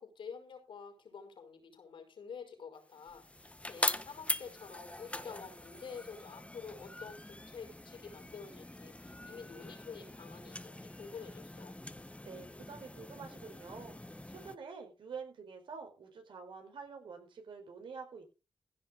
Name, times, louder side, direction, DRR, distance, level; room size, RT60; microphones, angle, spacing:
voice 1, 0.0-11.7, left 6 dB, 80° left, 4 dB, 5.3 m, -49 dB
sound 1, 2.9-14.6, left 1 dB, 15° left, 1.3 m, -42 dB
voice 2, 12.2-14.0 14.3-18.3, right 5 dB, 80° right, 4 dB, 4.8 m, -47 dB
16.0 x 6.6 x 5.3 m, 0.32 s
cardioid pair, 50°, 9 cm